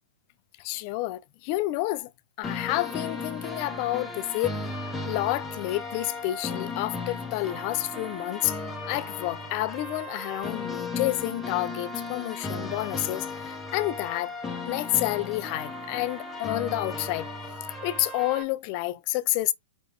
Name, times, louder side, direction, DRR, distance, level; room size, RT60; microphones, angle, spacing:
voice 1, 0.6-2.1 2.4-4.5 5.1-8.6 8.9-14.3 14.7-17.3 17.8-19.5, left 17 dB, 40° left, 0.5 m, -29 dB
sound 1, 2.4-18.4, left 3 dB, 5° left, 1.3 m, -35 dB
5.0 x 3.0 x 3.6 m
hypercardioid pair, 145°, 0 cm